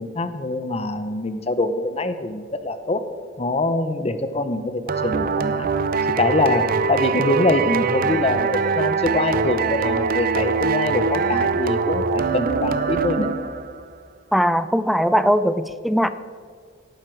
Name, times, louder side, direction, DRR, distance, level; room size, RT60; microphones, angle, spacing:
voice 1, 0.0-3.0 3.4-5.7 6.2-13.3, left 2 dB, 35° left, 10 dB, 0.8 m, -24 dB
sound 1, 4.9-13.8, right 5 dB, 50° right, 0.5 m, -23 dB
voice 2, 14.3-16.1, equal, ahead, 12 dB, 0.4 m, -19 dB
17.0 x 9.3 x 4.6 m, 2.1 s
head